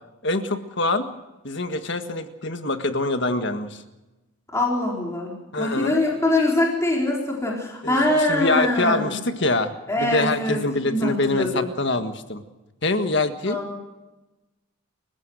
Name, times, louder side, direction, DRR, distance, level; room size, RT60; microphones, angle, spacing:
voice 1, 0.2-1.0 1.4-3.8 5.5-5.9 7.8-9.7 10.0-12.4 12.8-13.6, left 2 dB, 55° left, 8 dB, 1.7 m, -24 dB
voice 2, 4.5-9.2 9.9-11.7 13.4-13.8, left 1 dB, 15° left, -3 dB, 4.3 m, -23 dB
29.5 x 15.5 x 6.4 m, 1.1 s
head